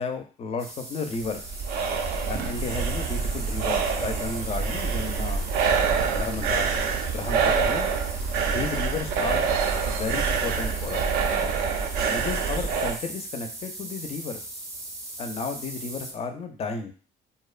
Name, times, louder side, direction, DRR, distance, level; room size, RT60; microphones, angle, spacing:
voice 1, 0.0-1.4 2.3-5.5 6.1-6.8 7.1-7.9 8.4-9.5 9.9-11.0 12.1-14.4 15.2-16.9, left 4 dB, 35° left, 7 dB, 0.4 m, -33 dB
sound 1, 0.6-16.1, right 1 dB, 20° right, 0.5 m, -39 dB
sound 2, 1.1-13.0, right 5 dB, 70° right, 0.4 m, -26 dB
2.7 x 2.1 x 2.3 m, 0.38 s
cardioid pair, 110°, 17 cm